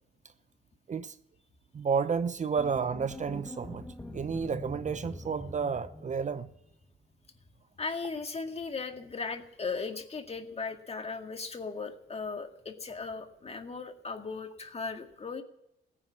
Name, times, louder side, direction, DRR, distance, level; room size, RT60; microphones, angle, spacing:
voice 1, 1.7-3.8 4.1-6.5, right 6 dB, 40° right, 0.8 m, -31 dB
sound 1, 2.6-6.8, left 1 dB, 10° left, 1.4 m, -44 dB
voice 2, 7.8-15.4, left 4 dB, 30° left, 2.1 m, -37 dB
16.5 x 10.0 x 7.4 m
cardioid pair, 90°, 20 cm